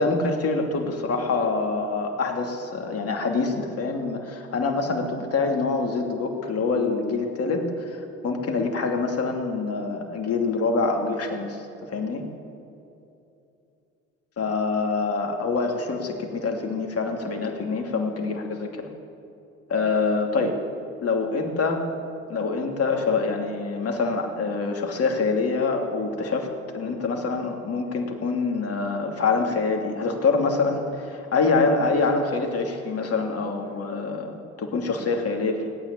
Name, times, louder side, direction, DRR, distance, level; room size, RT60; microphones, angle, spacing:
voice 1, 0.0-7.6 8.2-11.6 11.9-12.2 14.4-18.9 19.7-20.6 21.0-21.8 22.3-26.5 26.7-35.7, left 4 dB, 45° left, 3 dB, 2.8 m, -25 dB
18.0 x 9.1 x 8.8 m, 2.8 s
hypercardioid pair, 65°, 34 cm